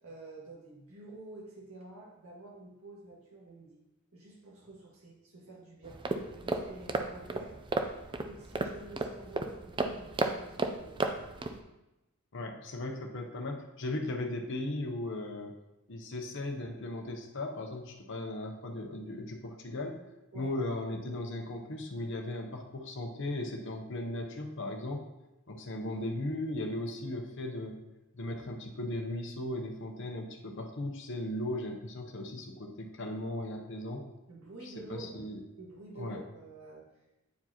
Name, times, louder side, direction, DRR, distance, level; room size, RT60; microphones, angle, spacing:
voice 1, 0.0-3.8 4.1-6.0 6.3-11.0 20.3-20.5 34.3-35.2 35.6-37.2, right 2 dB, 80° right, -4 dB, 1.9 m, -49 dB
sound 1, 5.8-11.6, right 3 dB, 20° right, 0.4 m, -34 dB
voice 2, 12.3-15.5 15.9-20.0 20.3-25.1 25.5-27.8 28.1-34.1 34.6-35.4 36.0-36.2, left 1 dB, 60° left, 2 dB, 0.8 m, -37 dB
9.4 x 4.6 x 2.9 m, 0.95 s
head